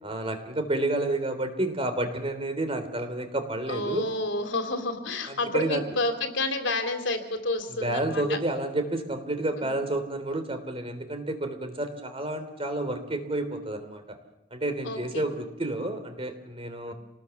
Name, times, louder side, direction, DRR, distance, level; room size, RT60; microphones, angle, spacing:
voice 1, 0.0-4.1 5.3-5.8 7.8-14.2 14.5-16.9, right 1 dB, 30° right, 7 dB, 3.3 m, -30 dB
voice 2, 3.7-8.4 9.6-9.8 14.8-15.2 16.9-17.0, left 2 dB, 75° left, 5 dB, 3.4 m, -30 dB
27.0 x 20.0 x 7.1 m, 0.93 s
head